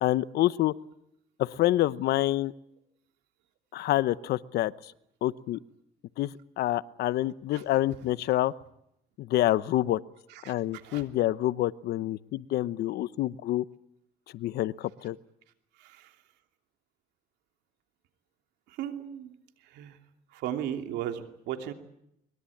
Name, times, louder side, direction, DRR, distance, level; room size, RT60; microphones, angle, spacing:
voice 1, 0.0-0.7 1.4-2.5 3.7-4.9 5.2-5.6 6.2-8.5 9.2-10.0 10.5-13.6 14.3-15.2, left 15 dB, 70° left, 18 dB, 0.9 m, -27 dB
voice 2, 15.8-16.1 18.7-19.3 19.7-20.0 20.3-21.7, right 10 dB, 90° right, 6 dB, 2.9 m, -35 dB
23.5 x 21.5 x 8.6 m, 0.78 s
cardioid pair, 110°, 17 cm